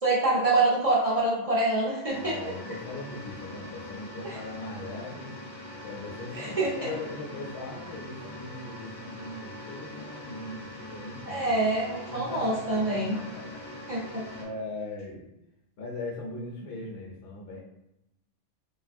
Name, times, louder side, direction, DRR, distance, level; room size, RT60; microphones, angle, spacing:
voice 1, 0.0-2.3 4.2-4.4 6.3-6.9 11.3-13.2 13.9-14.2, right 2 dB, 45° right, -6 dB, 0.5 m, -26 dB
sound 1, 2.1-14.4, left 1 dB, 30° left, 0.4 m, -42 dB
voice 2, 2.2-5.3 5.8-11.5 12.1-13.6 14.0-14.1 14.4-15.2 15.8-17.6, left 2 dB, 70° left, -2 dB, 0.8 m, -40 dB
3.2 x 2.3 x 2.5 m, 0.85 s
omnidirectional pair, 1.2 m